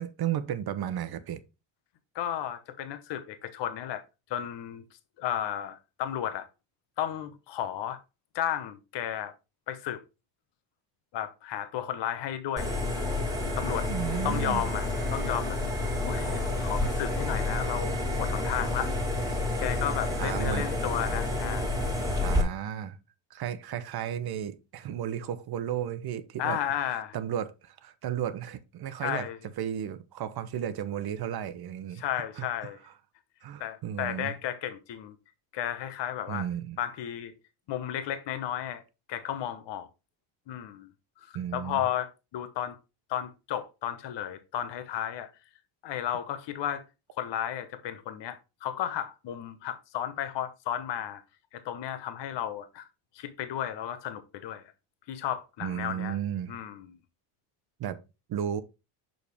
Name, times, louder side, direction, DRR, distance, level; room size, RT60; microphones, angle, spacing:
voice 1, 0.0-1.4 13.9-14.6 20.2-20.7 22.2-23.0 23.3-26.6 27.1-29.3 29.6-32.0 32.4-32.5 33.4-34.4 36.3-36.8 41.3-41.8 55.6-56.6 57.8-58.0 58.3-58.6, right 10 dB, 50° right, 0.8 m, -33 dB
voice 2, 2.1-4.0 4.3-4.8 5.2-6.5 7.0-8.0 8.3-9.3 9.7-10.0 11.1-12.8 13.5-13.9 14.2-14.9 15.1-15.6 16.1-18.9 19.6-21.8 26.4-27.2 29.0-29.4 32.0-32.8 33.6-35.2 35.5-36.4 36.8-37.3 37.7-38.8 39.1-39.9 40.5-40.9 41.2-42.8 43.1-45.3 45.8-46.8 47.2-51.2 51.5-52.9 53.1-54.7 55.1-56.2 56.5-56.9, left 10 dB, 55° left, 1.0 m, -33 dB
sound 1, 12.6-22.4, left 2 dB, 5° right, 2.2 m, -29 dB
6.3 x 5.1 x 3.4 m
cardioid pair, 120°, 50 cm